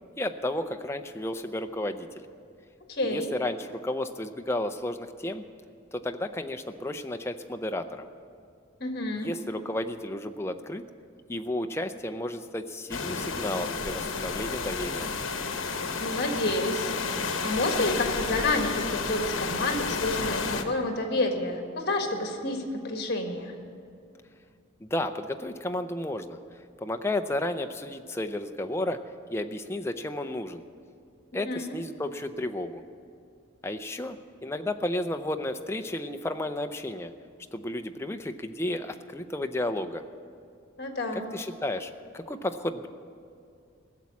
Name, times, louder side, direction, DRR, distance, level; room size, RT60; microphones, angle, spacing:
voice 1, 0.2-2.2 3.0-5.4 5.9-8.1 9.1-10.8 11.3-15.1 24.8-26.4 26.8-29.0 29.3-30.6 31.3-32.8 33.6-34.2 34.4-37.1 37.5-40.0 41.1-42.9, left 1 dB, 15° left, 7 dB, 0.5 m, -32 dB
voice 2, 2.9-3.3 8.8-9.3 16.0-16.9 17.4-23.5 31.4-31.8 40.8-41.3, left 2 dB, 50° left, 4 dB, 1.6 m, -29 dB
sound 1, 12.9-20.6, left 4 dB, 75° left, 1.0 m, -31 dB
16.0 x 7.3 x 9.6 m, 2.4 s
head